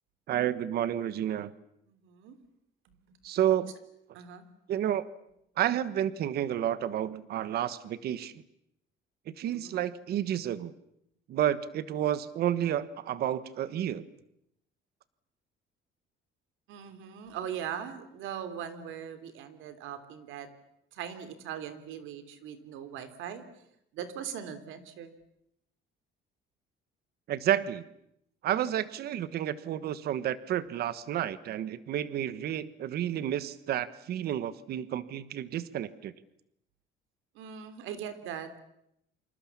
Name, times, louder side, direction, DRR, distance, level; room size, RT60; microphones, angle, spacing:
voice 1, 0.3-1.5 3.2-3.7 4.7-5.0 5.6-8.4 9.3-10.7 11.3-14.1 27.3-27.8 28.4-36.1, right 11 dB, 50° right, 15 dB, 1.3 m, -30 dB
voice 2, 1.9-2.4 3.1-3.2 4.1-4.4 9.5-9.7 16.7-20.5 20.9-23.4 23.9-25.1 37.3-38.6, right 9 dB, 80° right, 10 dB, 3.3 m, -40 dB
28.5 x 26.5 x 7.3 m, 0.77 s
cardioid pair, 175°, 20 cm